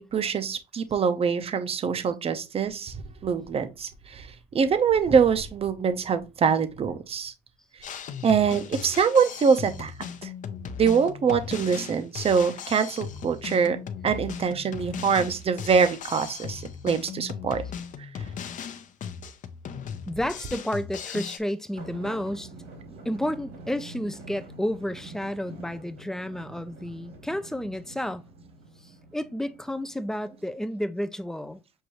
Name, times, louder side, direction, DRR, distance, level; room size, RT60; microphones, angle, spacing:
voice 1, 0.0-3.0 3.2-4.3 4.5-7.3 8.2-9.9 10.2-10.3 10.8-13.8 14.0-17.6, right 6 dB, 35° right, 0.6 m, -24 dB
Drum kit, 7.8-21.4, left 7 dB, 50° left, 0.6 m, -37 dB
voice 2, 20.1-22.5 23.0-28.2 28.8-31.6, equal, 5° left, 0.4 m, -31 dB
sound 1, 21.7-30.5, right 3 dB, 80° right, 2.3 m, -46 dB
6.4 x 2.6 x 3.0 m
cardioid pair, 110°, 17 cm